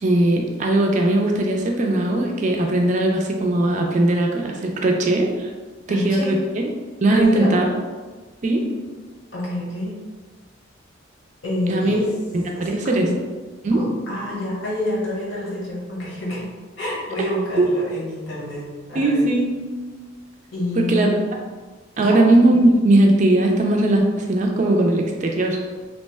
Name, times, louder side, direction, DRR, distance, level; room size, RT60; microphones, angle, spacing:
voice 1, 0.0-5.5 5.9-6.6 7.0-7.7 8.4-8.6 11.7-12.0 12.6-13.1 13.6-13.8 17.6-17.7 18.9-19.5 20.8-21.1 22.0-25.6, right 1 dB, 35° right, 1 dB, 0.3 m, -19 dB
voice 2, 5.9-6.4 7.1-7.6 9.3-10.0 11.4-12.1 12.5-13.2 13.7-16.5 16.8-19.2 20.5-21.2 21.9-22.2, left 1 dB, 70° left, -6 dB, 1.0 m, -27 dB
2.9 x 2.1 x 3.3 m, 1.4 s
head